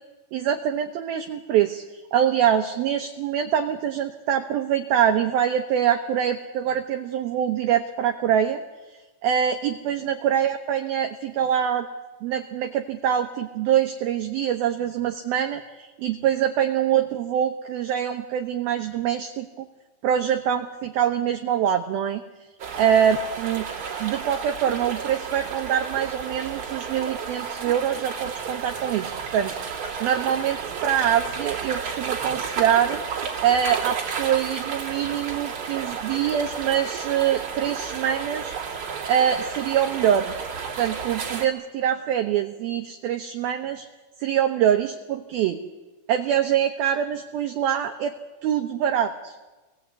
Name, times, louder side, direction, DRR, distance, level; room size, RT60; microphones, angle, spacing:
voice 1, 0.3-1.8 2.1-8.6 9.2-11.9 12.2-19.7 20.0-22.2 22.8-23.7 24.0-33.0 33.4-38.5 39.1-40.3 40.8-43.9 44.2-45.6 46.1-48.1 48.4-49.3, right 9 dB, 80° right, 5 dB, 2.2 m, -24 dB
sound 1, 22.6-41.4, right 6 dB, 40° right, 2.7 m, -32 dB
26.5 x 19.5 x 8.3 m, 1.2 s
omnidirectional pair, 5.6 m